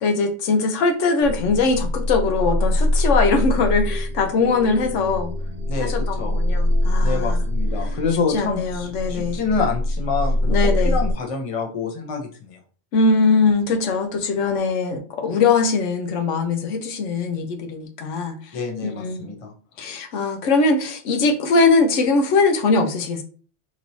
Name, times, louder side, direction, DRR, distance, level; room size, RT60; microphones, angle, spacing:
voice 1, 0.0-5.3 5.8-7.4 8.3-9.4 10.5-11.0 12.9-18.5 18.8-19.3 19.8-23.2, left 4 dB, 85° left, 1.0 m, -21 dB
sound 1, 1.2-11.1, left 1 dB, 55° right, 1.0 m, -23 dB
voice 2, 5.7-6.4 7.0-12.6 18.5-19.5, left 5 dB, 35° left, 0.7 m, -27 dB
4.3 x 3.0 x 2.7 m
omnidirectional pair, 1.2 m